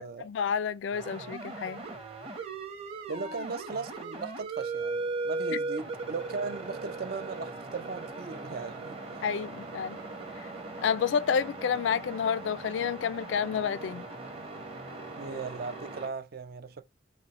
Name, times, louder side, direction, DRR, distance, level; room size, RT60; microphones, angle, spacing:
voice 1, 0.0-1.8 5.5-5.6 9.2-10.0 10.4-10.5 10.8-14.0, left 7 dB, 85° left, 0.4 m, -30 dB
sound 1, 0.9-16.1, right 3 dB, 35° right, 1.1 m, -38 dB
voice 2, 3.1-9.0 15.2-16.8, right 4 dB, 55° right, 0.5 m, -38 dB
5.0 x 2.1 x 4.0 m
head